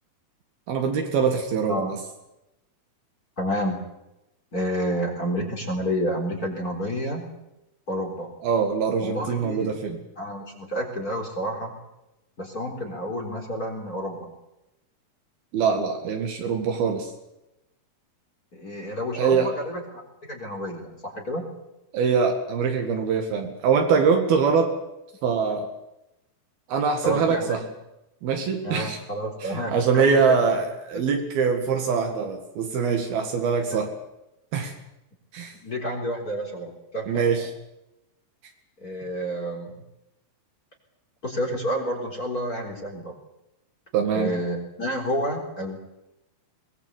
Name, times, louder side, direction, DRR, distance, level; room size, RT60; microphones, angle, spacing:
voice 1, 0.7-2.0 8.4-10.0 15.5-17.1 19.2-19.5 21.9-24.7 25.2-25.7 26.7-27.6 28.2-29.0 29.4-33.9 34.5-34.7 35.3-35.5 37.1-37.5 43.9-44.3, right 5 dB, 75° right, 3 dB, 3.8 m, -23 dB
voice 2, 3.4-3.8 4.5-7.2 7.9-8.3 9.0-9.7 10.2-11.8 12.4-14.3 18.5-20.0 20.3-21.5 27.0-27.7 28.6-30.4 33.7-33.8 35.5-37.2 38.8-39.8 41.2-43.2 44.1-45.8, equal, 25° left, 2 dB, 4.0 m, -29 dB
23.0 x 19.5 x 8.2 m, 0.92 s
omnidirectional pair, 4.4 m